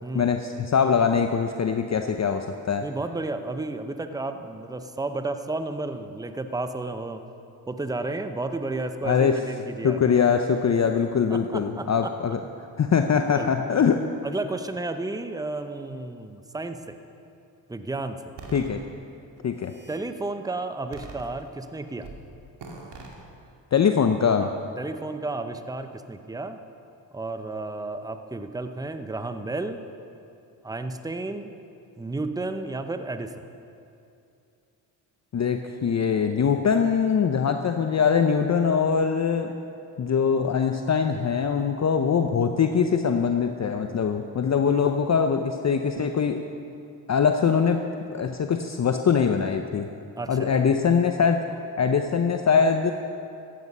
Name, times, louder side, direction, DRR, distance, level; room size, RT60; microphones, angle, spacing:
voice 1, 0.1-2.9 9.0-9.4 9.8-12.4 12.8-14.0 18.5-18.8 19.4-19.7 23.7-24.5 35.3-39.5 40.0-46.4 47.1-47.8 48.1-49.9 50.3-51.4 51.8-52.9, left 6 dB, 35° left, 6 dB, 0.7 m, -22 dB
voice 2, 2.8-7.2 7.7-10.1 11.3-12.1 13.4-13.5 14.2-17.0 17.7-18.4 19.9-22.1 24.4-26.6 27.1-29.8 30.6-31.5 32.0-33.3 50.2-50.5, right 2 dB, 10° right, 8 dB, 0.8 m, -32 dB
sound 1, 18.4-18.7 19.4-20.0 20.9-21.6 22.0-22.2 22.6-23.1, right 3 dB, 65° right, 2.3 m, -42 dB
15.0 x 9.3 x 5.5 m, 2.6 s
supercardioid pair, 55°, 46 cm